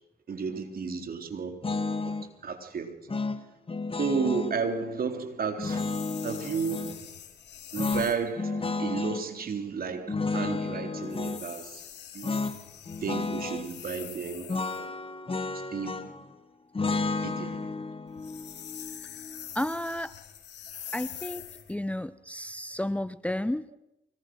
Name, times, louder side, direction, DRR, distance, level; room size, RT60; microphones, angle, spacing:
voice 1, 0.3-1.6 2.0-3.0 4.0-5.8 6.2-7.1 7.7-11.8 12.1-12.4 13.0-14.9 15.7-16.1 17.2-17.6 20.7-20.9, right 5 dB, 55° right, 3.6 m, -33 dB
sound 1, 1.6-2.3 3.1-4.6 5.6-7.0 7.8-9.2 10.1-11.4 12.2-12.6 12.9-13.7 14.5-16.2 16.7-19.8, left 3 dB, 30° left, 1.9 m, -32 dB
sound 2, 5.6-8.3 11.0-14.9 18.1-21.7, left 10 dB, 65° left, 3.3 m, -44 dB
voice 2, 19.5-20.1 20.9-23.6, left 1 dB, 5° left, 0.9 m, -32 dB
24.5 x 19.5 x 6.3 m
hypercardioid pair, 50°, 19 cm